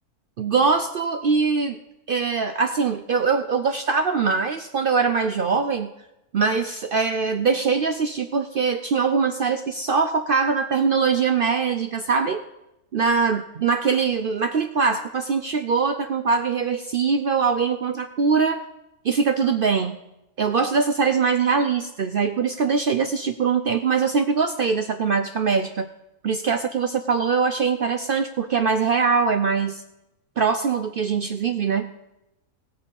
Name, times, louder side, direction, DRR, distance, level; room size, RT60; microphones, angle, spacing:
voice 1, 0.4-1.8 2.1-5.9 6.3-12.4 12.9-18.6 19.0-20.0 20.4-25.9 26.2-29.8 30.4-31.9, right 5 dB, 75° right, 8 dB, 0.5 m, -22 dB
18.0 x 6.5 x 5.3 m, 0.90 s
omnidirectional pair, 1.6 m